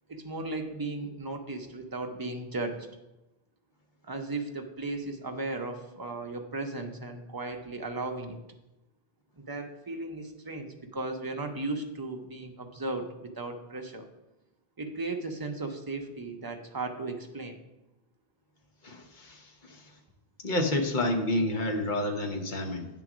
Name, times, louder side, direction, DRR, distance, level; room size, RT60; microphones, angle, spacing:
voice 1, 0.1-2.8 4.0-8.4 9.4-14.0 14.8-17.6, right 2 dB, 25° right, 4 dB, 0.6 m, -36 dB
voice 2, 18.8-19.8 20.4-22.9, left 1 dB, 50° left, 4 dB, 1.0 m, -29 dB
8.8 x 3.8 x 6.0 m, 0.98 s
omnidirectional pair, 1.0 m